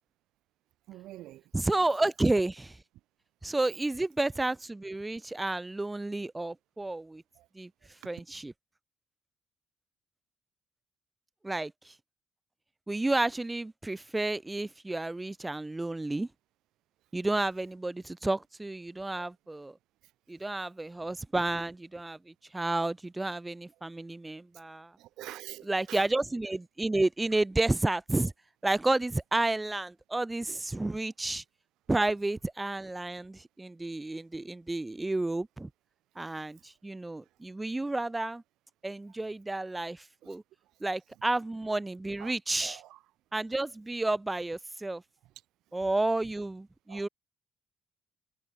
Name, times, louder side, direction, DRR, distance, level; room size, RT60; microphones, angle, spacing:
voice 1, 0.9-1.4 7.4-7.5 19.2-19.3 25.0-26.0 30.5-30.6 42.2-42.3 42.6-43.0 46.9-47.1, right 15 dB, 80° right, 1.0 m, -45 dB
voice 2, 1.5-2.8 3.4-7.2 7.6-7.7 8.0-8.5 11.4-11.9 12.9-16.3 17.1-19.7 20.3-22.2 22.5-24.9 25.7-28.3 28.6-31.4 31.9-35.7 36.2-38.4 38.8-40.4 40.8-42.8 43.3-45.0 45.7-47.1, right 2 dB, 15° right, 0.4 m, -31 dB
supercardioid pair, 75°, 0 cm